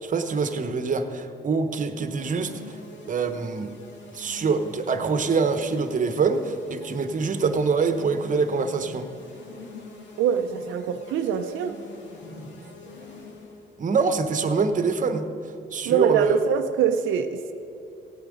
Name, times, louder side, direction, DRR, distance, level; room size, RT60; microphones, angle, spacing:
voice 1, 0.0-2.8 3.1-3.7 4.1-9.1 13.8-15.3 15.7-16.4, right 4 dB, 40° right, 9 dB, 0.9 m, -25 dB
sound 1, 2.1-13.7, left 3 dB, 65° left, 2.1 m, -45 dB
voice 2, 10.2-11.8 15.8-17.5, right 8 dB, 90° right, 6 dB, 0.6 m, -24 dB
17.0 x 9.0 x 5.1 m, 2.7 s
cardioid pair, 90°, 20 cm